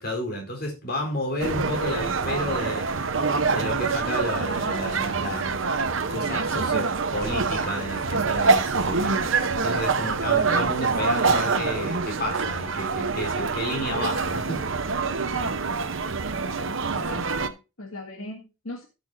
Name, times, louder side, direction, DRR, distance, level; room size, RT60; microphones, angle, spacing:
voice 1, 0.0-2.8 3.5-9.1 9.6-14.6, left 1 dB, 45° left, 1 dB, 4.0 m, -31 dB
sound 1, 1.4-17.5, right 4 dB, 70° right, 0.9 m, -25 dB
voice 2, 16.9-18.9, left 2 dB, 80° left, 1 dB, 2.0 m, -39 dB
15.0 x 7.0 x 2.7 m, 0.27 s
head